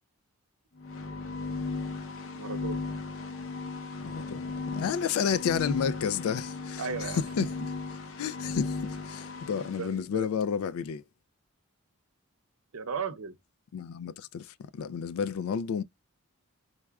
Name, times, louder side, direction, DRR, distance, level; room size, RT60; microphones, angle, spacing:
sound 1, 0.8-9.9, left 3 dB, 65° left, 0.7 m, -36 dB
voice 1, 2.3-2.9 6.8-7.2 8.2-8.3 9.6-10.3 12.7-13.4, right 6 dB, 80° right, 0.6 m, -36 dB
voice 2, 4.0-7.5 8.2-11.0 13.7-15.8, left 7 dB, 85° left, 0.3 m, -31 dB
4.7 x 2.1 x 2.2 m
head